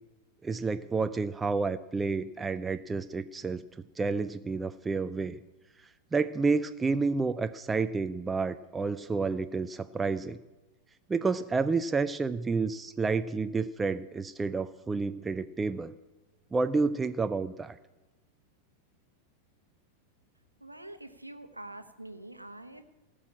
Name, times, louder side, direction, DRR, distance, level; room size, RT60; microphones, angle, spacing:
voice 1, 0.4-3.6 4.0-5.4 6.1-10.4 11.1-15.9 16.5-17.8, right 4 dB, 15° right, 11 dB, 0.4 m, -30 dB
voice 2, 20.6-22.8, right 1 dB, 85° right, 8 dB, 1.0 m, -45 dB
17.5 x 6.2 x 8.6 m, 1.1 s
figure-of-eight pair, 90°, 0 cm